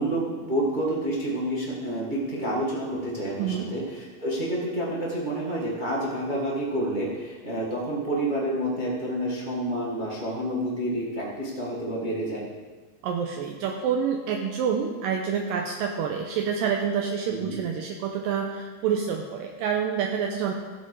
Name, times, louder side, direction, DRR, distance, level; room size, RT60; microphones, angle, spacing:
voice 1, 0.0-12.4 17.3-17.5, right 1 dB, 35° right, -5 dB, 0.8 m, -29 dB
voice 2, 3.4-3.7 13.0-20.5, right 7 dB, 80° right, 2 dB, 2.1 m, -27 dB
15.0 x 7.7 x 4.9 m, 1.4 s
omnidirectional pair, 4.5 m